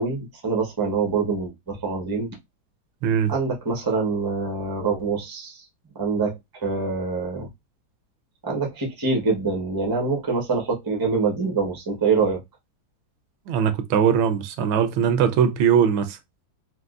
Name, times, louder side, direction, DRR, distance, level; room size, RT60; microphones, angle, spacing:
voice 1, 0.0-2.3 3.3-5.6 5.9-7.5 8.4-12.4, right 4 dB, 35° right, 0.3 m, -25 dB
voice 2, 3.0-3.3 13.5-16.2, right 8 dB, 80° right, 1.3 m, -20 dB
4.5 x 2.1 x 2.4 m
omnidirectional pair, 2.2 m